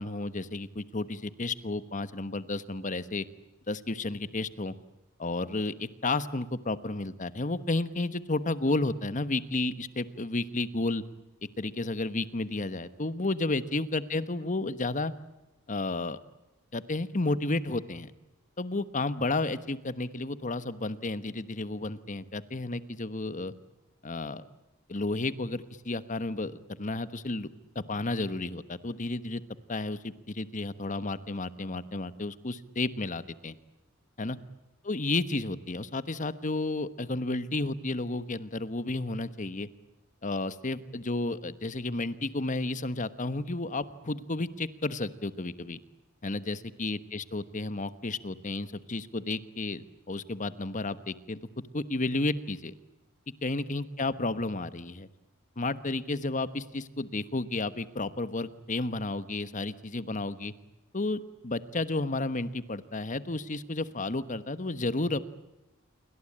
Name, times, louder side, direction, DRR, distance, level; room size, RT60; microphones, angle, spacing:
voice 1, 0.0-3.3 3.7-4.8 5.2-11.0 11.6-15.1 15.7-16.2 16.7-18.1 18.6-23.5 24.0-24.4 24.9-27.5 27.7-29.4 29.7-33.6 34.2-34.4 34.8-39.7 40.2-45.8 46.2-51.4 51.7-52.7 53.4-55.1 55.6-60.5 60.9-65.2, left 2 dB, 40° left, 13 dB, 1.2 m, -32 dB
28.0 x 24.5 x 8.8 m, 0.95 s
head